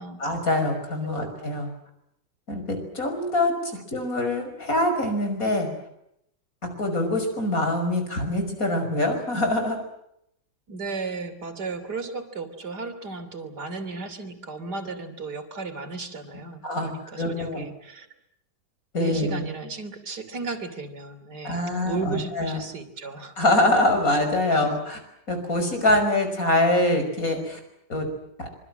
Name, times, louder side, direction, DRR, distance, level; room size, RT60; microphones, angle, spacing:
voice 1, 0.2-1.7 2.5-5.7 6.8-9.8 16.6-16.9 17.2-17.7 18.9-19.4 21.4-22.6 23.4-25.0 25.3-27.6 27.9-28.1 28.4-28.5, left 1 dB, 50° left, 6 dB, 6.2 m, -24 dB
voice 2, 10.7-18.1 19.0-23.4 24.5-24.7, right 4 dB, 60° right, 9 dB, 3.5 m, -35 dB
26.0 x 24.5 x 7.7 m, 0.76 s
omnidirectional pair, 1.9 m